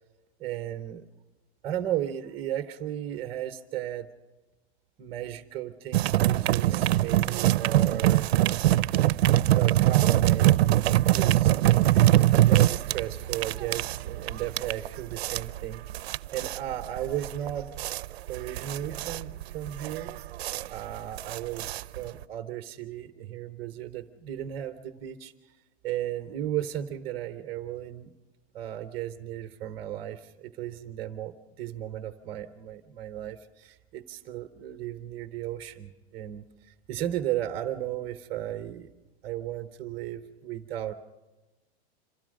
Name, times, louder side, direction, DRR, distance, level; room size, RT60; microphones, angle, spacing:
voice 1, 0.4-1.1 1.6-4.1 5.0-8.3 9.6-10.7 11.0-11.5 12.4-17.7 18.3-20.1 20.7-25.6 25.8-28.1 28.5-38.9 39.2-40.9, right 12 dB, 15° right, 8 dB, 0.8 m, -35 dB
sound 1, 5.9-22.2, right 14 dB, 70° right, 0.6 m, -23 dB
26.5 x 16.5 x 6.4 m, 1.1 s
supercardioid pair, 170°, 33 cm